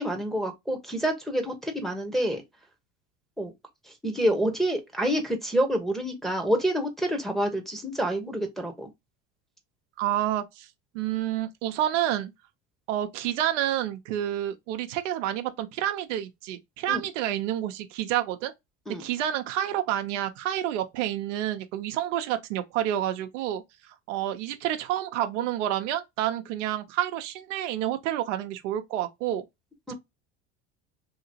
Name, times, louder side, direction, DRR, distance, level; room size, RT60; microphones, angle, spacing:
voice 1, 0.0-2.4 3.4-3.5 4.0-8.9 16.9-17.0 18.9-19.0 29.9-30.0, right 1 dB, ahead, 1.0 m, -27 dB
voice 2, 10.0-10.7 10.9-12.3 12.9-18.5 19.0-29.4 29.9-30.0, right 12 dB, 80° right, 0.7 m, -29 dB
2.9 x 2.8 x 2.7 m
supercardioid pair, 90°, 37 cm